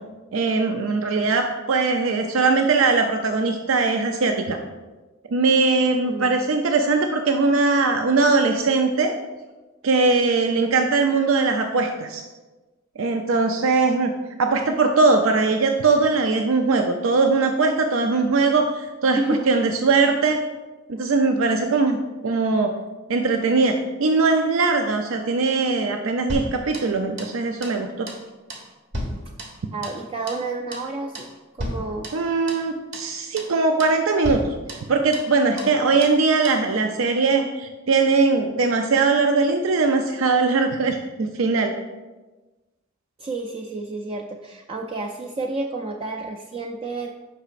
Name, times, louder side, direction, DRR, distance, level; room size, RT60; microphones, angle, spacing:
voice 1, 0.3-4.6 5.3-9.1 9.8-12.2 13.0-14.1 14.4-19.2 19.5-20.4 20.9-22.0 22.2-22.7 23.1-28.1 32.1-34.5 34.9-41.7, right 3 dB, 90° right, 4 dB, 0.5 m, -20 dB
voice 2, 6.0-6.4 19.1-19.5 29.7-31.3 31.5-32.1 35.6-36.1 43.2-47.1, right 2 dB, 30° right, 1 dB, 0.4 m, -30 dB
sound 1, 26.3-27.4 27.6-27.8 28.1-28.2 28.5-30.0 30.3-30.5 30.7-30.9 31.1-31.3 31.6-32.7 32.9-33.1 33.4-33.5 33.8-34.0 34.2-35.3 35.6-35.7 36.0-36.2 36.4-36.6, equal, 65° right, 1.2 m, -34 dB
8.8 x 5.8 x 2.5 m, 1.2 s
head